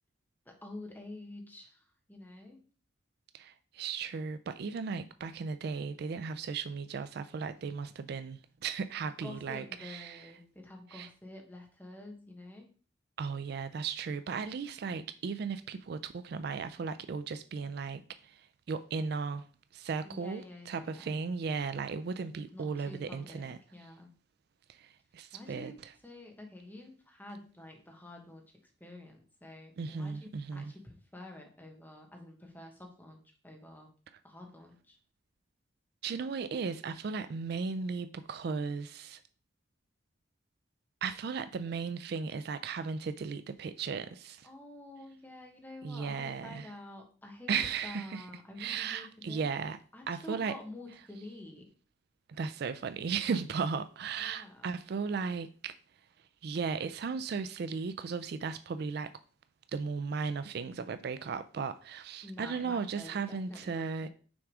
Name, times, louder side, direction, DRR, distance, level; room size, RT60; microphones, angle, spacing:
voice 1, 0.4-2.6 9.2-12.7 20.0-21.2 22.5-24.1 25.3-25.8 26.0-33.2 33.4-33.9 34.2-35.0 44.4-49.6 49.9-51.7 54.2-54.7 62.2-64.1, left 1 dB, 10° left, 1.2 m, -48 dB
voice 2, 3.3-10.3 10.9-11.1 13.2-19.5 19.7-23.6 24.7-25.9 29.8-30.7 36.0-39.2 41.0-44.5 45.8-46.7 47.5-48.3 48.6-49.8 50.1-50.5 52.3-55.7 56.4-59.1 59.7-64.1, right 5 dB, 55° right, 0.3 m, -36 dB
6.1 x 3.6 x 4.7 m
head